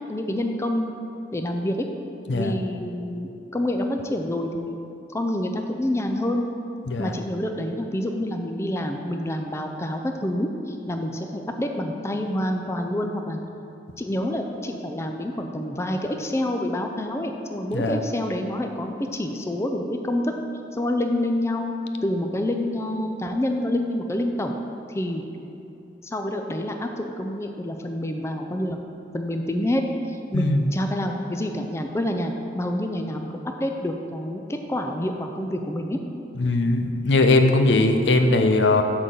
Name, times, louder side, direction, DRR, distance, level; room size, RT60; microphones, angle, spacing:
voice 1, 0.1-0.9 1.3-1.9 2.3-4.8 5.1-6.5 7.0-13.4 14.0-20.3 20.7-21.7 22.0-24.5 24.9-25.2 26.0-28.8 29.1-29.8 30.1-33.3 33.6-36.0, left 1 dB, 15° left, 4 dB, 0.4 m, -27 dB
voice 2, 30.3-30.6 36.4-38.8, left 2 dB, 90° left, 6 dB, 0.6 m, -20 dB
8.1 x 3.9 x 6.5 m, 2.8 s
head